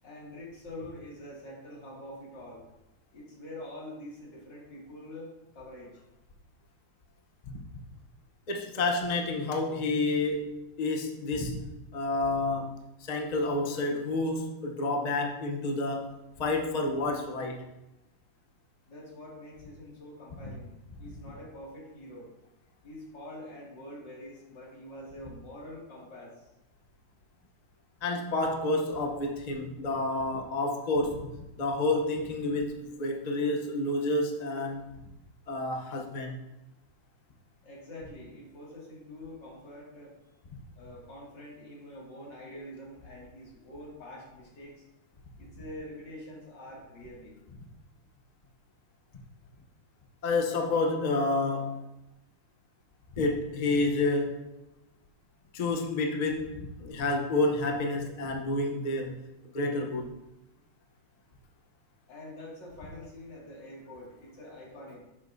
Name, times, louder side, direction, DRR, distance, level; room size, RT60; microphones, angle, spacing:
voice 1, 0.0-2.6 3.1-6.0 18.9-22.3 22.8-26.5 37.6-40.1 40.8-44.8 45.4-47.3 62.1-65.0, left 1 dB, 60° left, -5 dB, 3.0 m, -45 dB
voice 2, 8.5-11.6 11.9-17.6 28.0-31.3 31.6-35.0 35.5-36.4 50.2-51.8 53.2-54.4 55.5-59.1 59.5-60.1, left 2 dB, 75° left, 1 dB, 0.3 m, -29 dB
10.0 x 7.0 x 2.7 m, 0.97 s
omnidirectional pair, 2.3 m